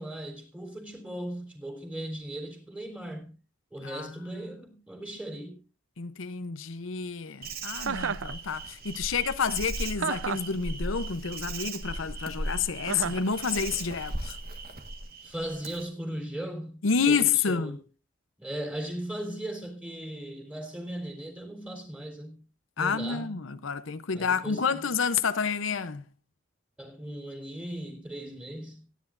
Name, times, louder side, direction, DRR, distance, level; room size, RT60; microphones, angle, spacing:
voice 1, 0.0-3.4 3.7-5.6 15.2-17.8 18.4-22.4 22.8-23.4 24.1-24.9 26.8-28.9, right 1 dB, 5° right, 3.6 m, -38 dB
voice 2, 3.8-4.1 6.0-14.4 16.8-17.8 22.8-26.0, left 6 dB, 80° left, 0.7 m, -29 dB
Insect, 7.4-15.8, right 2 dB, 50° right, 1.5 m, -37 dB
Chuckle chortle, 7.8-8.3 10.0-10.5 12.9-13.3, right 6 dB, 75° right, 0.6 m, -31 dB
23.5 x 10.0 x 2.5 m
head